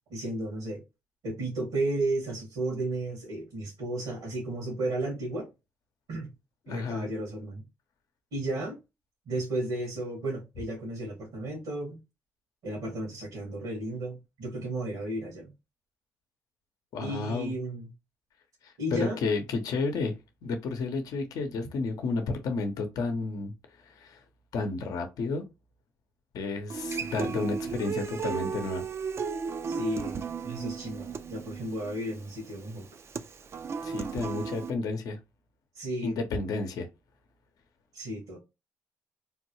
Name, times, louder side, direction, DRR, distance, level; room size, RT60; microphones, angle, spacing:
voice 1, 0.1-0.8 1.2-5.5 6.1-6.3 6.7-7.6 8.3-8.8 9.3-12.0 12.6-15.5 17.0-17.9 18.8-19.2 29.7-32.9 35.8-36.2 37.9-38.4, right 1 dB, 80° right, 1.8 m, -33 dB
voice 2, 6.7-7.1 16.9-17.5 18.6-20.1 20.4-23.5 23.8-24.2 24.5-25.4 26.3-28.8 33.8-35.2 36.0-36.9, left 3 dB, 75° left, 0.7 m, -31 dB
Human voice / Acoustic guitar, 26.7-34.7, right 5 dB, 45° right, 0.4 m, -34 dB
3.4 x 2.3 x 3.0 m
supercardioid pair, 70°, 6 cm